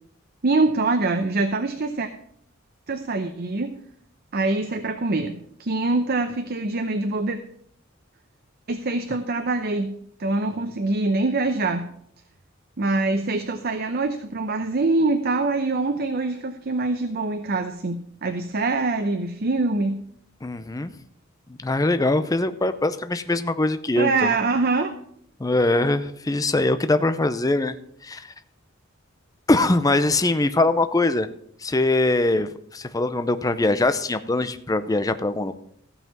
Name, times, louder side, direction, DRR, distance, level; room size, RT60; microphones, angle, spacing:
voice 1, 0.4-2.1 2.9-3.7 4.3-7.4 8.7-9.9 10.2-11.9 12.8-20.0 24.0-24.9, right 3 dB, 50° right, 7 dB, 0.7 m, -24 dB
voice 2, 20.4-20.9 21.6-24.3 25.4-27.7 28.0-28.3 29.5-31.3 31.6-35.5, left 2 dB, 20° left, 11 dB, 0.5 m, -22 dB
15.0 x 5.6 x 5.9 m, 0.66 s
head